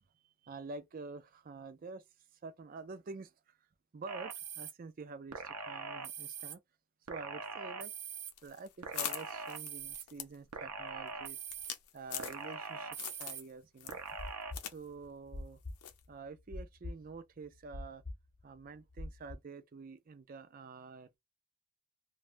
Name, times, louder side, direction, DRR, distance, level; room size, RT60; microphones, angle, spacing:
voice 1, 0.4-2.0 2.4-3.3 3.9-6.6 7.1-7.9 8.4-11.4 11.9-14.0 14.6-15.6 16.1-18.0 18.4-21.2, right 4 dB, 40° right, 0.3 m, -48 dB
sound 1, 4.1-4.7 5.3-6.5 7.1-8.3 8.8-10.0 10.5-11.7 12.2-13.4 13.9-14.5, right 5 dB, 80° right, 0.6 m, -43 dB
sound 2, 8.3-12.7 13.0-13.5 13.8-14.8 15.0-15.1 15.8-16.0, left 10 dB, 85° left, 0.6 m, -42 dB
sound 3, 13.9-17.2 17.4-19.3, left 2 dB, 30° left, 0.5 m, -44 dB
2.5 x 2.2 x 3.0 m
head